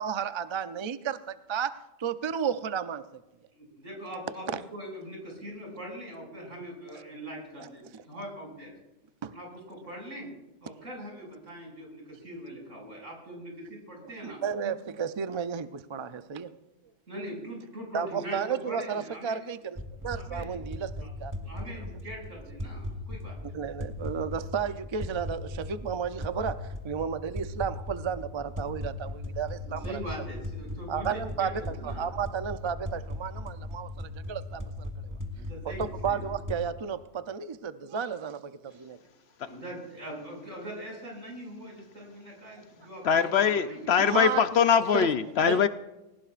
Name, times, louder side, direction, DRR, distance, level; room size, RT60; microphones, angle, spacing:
voice 1, 0.0-3.2 4.5-4.6 7.6-8.0 9.2-9.3 14.0-16.6 17.9-21.5 23.4-30.0 30.9-35.1 35.6-39.0 44.0-44.4 44.9-45.1 45.5-45.6, right 7 dB, 50° right, 11 dB, 0.3 m, -33 dB
voice 2, 3.5-4.5 4.7-8.7 9.3-10.3 10.6-14.4 14.6-14.7 17.1-19.4 20.3-20.6 21.5-23.5 29.6-32.1 35.3-36.2 39.4-43.9, equal, 70° right, -1 dB, 6.5 m, -42 dB
sound 1, 19.8-36.6, left 1 dB, 15° right, 1.4 m, -38 dB
voice 3, 43.0-45.7, left 7 dB, 65° left, 11 dB, 0.8 m, -23 dB
20.5 x 18.5 x 2.5 m, 0.99 s
omnidirectional pair, 1.3 m